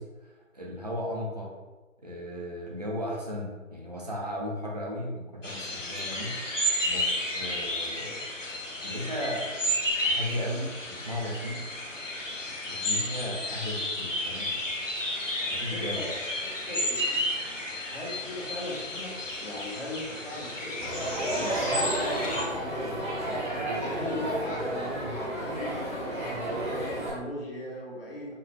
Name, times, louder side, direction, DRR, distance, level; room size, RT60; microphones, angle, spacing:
voice 1, 0.0-1.5 2.0-6.3 6.8-8.2 8.8-9.5 10.0-11.6 12.7-14.5 15.5-16.1, left 1 dB, 30° right, -2 dB, 0.6 m, -35 dB
sound 1, 5.4-22.4, left 1 dB, 70° left, 1.1 m, -32 dB
voice 2, 15.4-16.1 16.4-17.2 17.9-20.9 21.3-23.0 23.5-28.3, left 1 dB, 45° left, -4 dB, 1.3 m, -39 dB
Crowd, 20.8-27.1, right 1 dB, 10° right, 0.9 m, -31 dB
5.9 x 2.4 x 3.1 m, 1.2 s
figure-of-eight pair, 155°, 40 cm